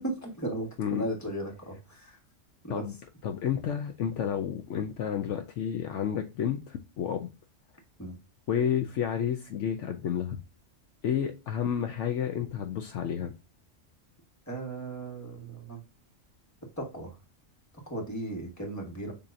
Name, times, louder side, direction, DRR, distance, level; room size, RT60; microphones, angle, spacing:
voice 1, 0.0-2.2 2.6-2.8 8.0-8.1 14.5-15.8 16.8-17.1 17.9-19.1, right 1 dB, 15° left, 1.4 m, -36 dB
voice 2, 3.2-7.3 8.5-10.4 11.0-13.3, left 8 dB, 70° left, 0.9 m, -30 dB
6.8 x 2.8 x 2.5 m
omnidirectional pair, 1.4 m